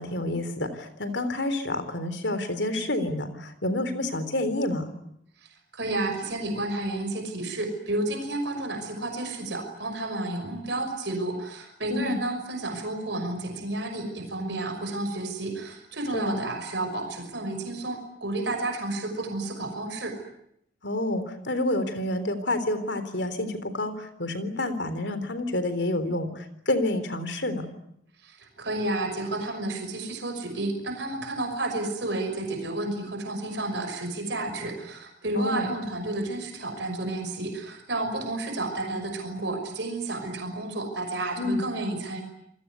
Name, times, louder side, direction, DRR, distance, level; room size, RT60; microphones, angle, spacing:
voice 1, 0.0-4.9 11.9-12.2 16.1-16.4 20.8-27.7 35.3-35.7 41.4-41.6, left 1 dB, 70° left, 11 dB, 3.7 m, -29 dB
voice 2, 5.4-20.2 28.2-42.2, right 2 dB, 65° right, 5 dB, 6.0 m, -31 dB
28.5 x 21.0 x 9.5 m, 0.75 s
head